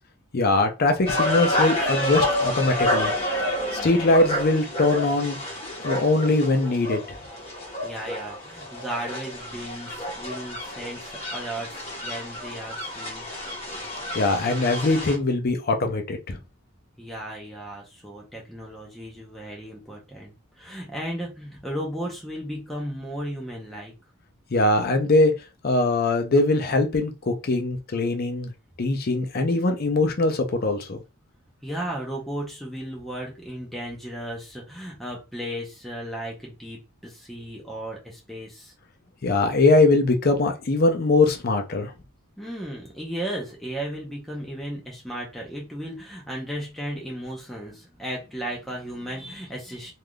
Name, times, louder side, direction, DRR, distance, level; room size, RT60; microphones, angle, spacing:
voice 1, 0.3-3.1 3.7-5.4 5.6-7.2 14.1-16.4 24.5-25.3 25.6-28.5 28.8-31.0 39.2-41.9, left 2 dB, 45° left, 0.5 m, -22 dB
sound 1, 1.0-15.1, left 1 dB, 30° left, 1.1 m, -29 dB
voice 2, 7.4-13.3 17.0-23.9 31.6-38.7 42.4-49.9, right 1 dB, ahead, 0.6 m, -35 dB
3.3 x 2.4 x 2.2 m
head